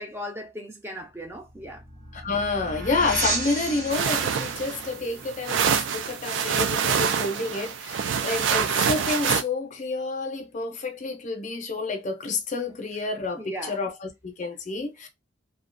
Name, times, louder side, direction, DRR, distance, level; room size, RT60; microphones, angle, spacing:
voice 1, 0.0-1.8 5.1-5.2 13.4-13.8, equal, 15° right, 0.5 m, -37 dB
sound 1, 1.2-6.6, right 2 dB, 40° right, 0.8 m, -34 dB
voice 2, 2.1-15.1, left 3 dB, 40° left, 0.5 m, -29 dB
sound 2, 3.9-9.4, right 7 dB, 80° right, 0.3 m, -26 dB
2.4 x 2.1 x 2.5 m
head